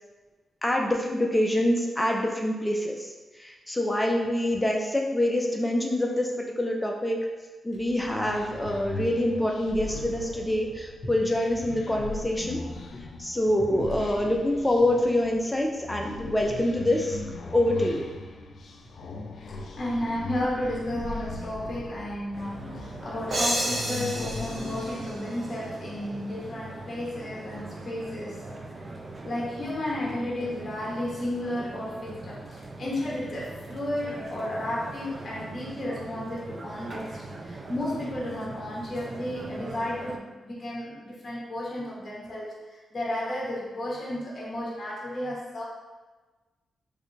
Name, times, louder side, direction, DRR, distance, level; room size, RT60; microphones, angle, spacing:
voice 1, 0.6-3.1 3.4-6.3 6.6-7.2 7.6-12.6 13.2-17.2 17.5-18.0, left 1 dB, 10° left, 0 dB, 0.6 m, -25 dB
sound 1, 7.7-25.2, left 3 dB, 70° left, 0.3 m, -39 dB
voice 2, 19.5-28.5 29.2-42.6 42.9-45.6, left 1 dB, 40° left, -5 dB, 0.8 m, -33 dB
sound 2, 22.3-40.2, right 2 dB, 40° right, 0.4 m, -41 dB
sound 3, 23.3-26.0, right 1 dB, 60° right, 0.8 m, -31 dB
3.2 x 2.5 x 3.1 m, 1.2 s
cardioid pair, 65°, 0 cm